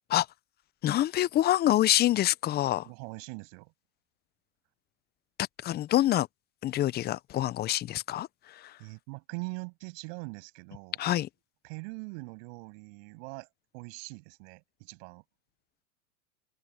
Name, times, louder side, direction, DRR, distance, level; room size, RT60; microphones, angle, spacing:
voice 1, 0.8-2.9 5.6-6.3 6.6-8.3 11.0-11.3, left 13 dB, 20° left, 0.6 m, -26 dB
voice 2, 2.8-3.7 8.8-11.0 11.6-13.5 13.7-15.2, right 35 dB, 55° right, 8.0 m, -42 dB
open air
hypercardioid pair, 115°, 44 cm